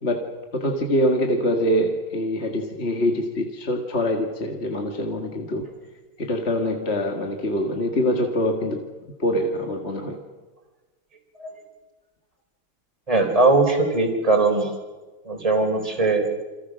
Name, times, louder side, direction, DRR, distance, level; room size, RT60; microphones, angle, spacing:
voice 1, 0.0-5.7 6.2-8.9 9.2-10.2, equal, 30° left, 3 dB, 2.0 m, -24 dB
voice 2, 13.1-14.7 15.3-16.3, right 3 dB, 15° right, 3 dB, 4.0 m, -20 dB
29.0 x 26.5 x 6.3 m, 1.3 s
omnidirectional pair, 2.3 m